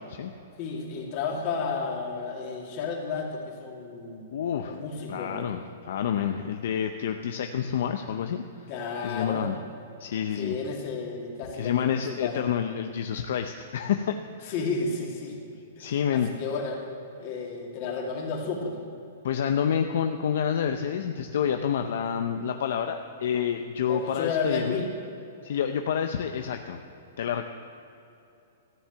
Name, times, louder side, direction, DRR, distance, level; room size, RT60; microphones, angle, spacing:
voice 1, 0.6-4.3 4.6-5.4 8.7-9.4 10.4-12.4 14.5-15.4 15.8-16.8 17.2-18.8 23.9-24.9, left 4 dB, 40° left, -1 dB, 2.6 m, -32 dB
voice 2, 4.3-4.8 5.1-8.4 9.0-9.6 10.0-10.6 11.6-14.5 15.8-16.3 19.2-24.8 25.4-26.8 27.2-27.4, left 8 dB, 65° left, 6 dB, 0.6 m, -28 dB
14.0 x 7.4 x 7.6 m, 2.7 s
hypercardioid pair, 145°, 0 cm